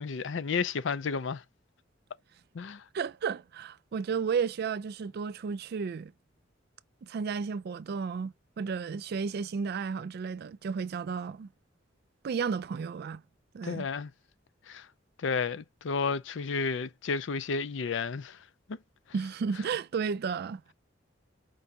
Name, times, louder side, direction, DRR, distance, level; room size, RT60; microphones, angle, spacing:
voice 1, 0.0-1.4 2.5-2.8 13.6-14.1 14.7-14.9 15.2-18.4 18.7-18.8, left 5 dB, 70° left, 0.5 m, -32 dB
voice 2, 2.9-6.1 7.0-11.5 12.2-13.2 13.5-13.9 19.1-20.7, right 6 dB, 55° right, 0.3 m, -33 dB
5.2 x 3.4 x 2.8 m
head